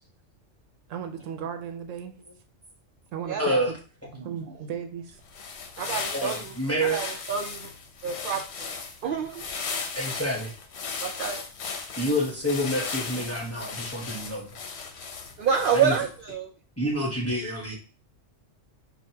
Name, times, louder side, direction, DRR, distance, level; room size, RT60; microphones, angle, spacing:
voice 1, 0.9-2.2 3.1-3.6 4.2-5.2, right 7 dB, 80° right, 6 dB, 1.0 m, -35 dB
voice 2, 3.4-3.7 6.1-7.1 9.9-10.5 12.0-14.5 15.7-15.9 16.8-17.7, equal, 15° left, -3 dB, 0.8 m, -28 dB
sound 1, 5.2-16.2, left 5 dB, 60° left, 0.9 m, -36 dB
voice 3, 5.8-6.5 6.8-7.7 8.0-8.7 9.0-9.4 11.0-11.4 13.2-13.3 15.4-16.5, right 7 dB, 60° right, 2 dB, 0.6 m, -28 dB
6.1 x 2.4 x 2.7 m, 0.38 s
omnidirectional pair, 1.3 m